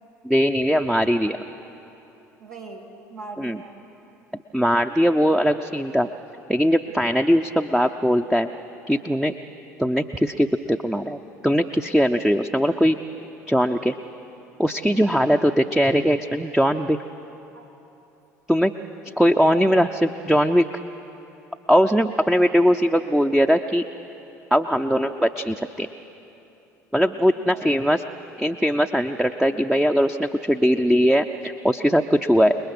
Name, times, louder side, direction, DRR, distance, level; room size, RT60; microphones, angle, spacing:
voice 1, 0.2-1.4 3.4-3.6 4.5-6.1 6.5-8.5 8.9-9.3 9.8-11.2 11.4-13.0 13.5-14.0 14.6-17.0 18.5-18.7 19.2-20.7 21.7-23.9 24.5-25.9 26.9-28.0 28.4-32.6, equal, 5° right, 6 dB, 0.6 m, -20 dB
voice 2, 2.4-3.9 17.5-17.7 19.6-19.9 22.0-22.4 27.3-27.7, right 4 dB, 85° right, -1 dB, 2.5 m, -41 dB
28.5 x 20.5 x 6.1 m, 2.9 s
figure-of-eight pair, 65°, 9 cm